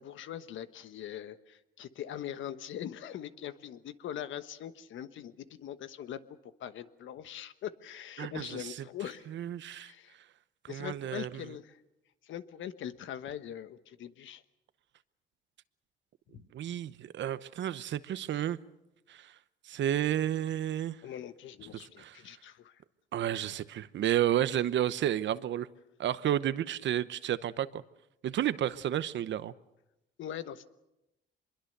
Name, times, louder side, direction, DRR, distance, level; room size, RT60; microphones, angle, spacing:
voice 1, 0.0-9.3 9.7-10.2 10.7-11.8 12.2-14.4 16.3-16.4 20.7-22.8 30.2-30.7, left 10 dB, 75° left, 1.2 m, -42 dB
voice 2, 8.2-8.5 9.3-9.9 10.6-11.4 16.5-18.6 19.1-19.3 19.6-21.0 21.7-22.2 23.1-25.7 26.0-27.8 28.2-29.5, right 11 dB, 65° right, 0.9 m, -31 dB
24.5 x 22.0 x 6.7 m
cardioid pair, 90°, 20 cm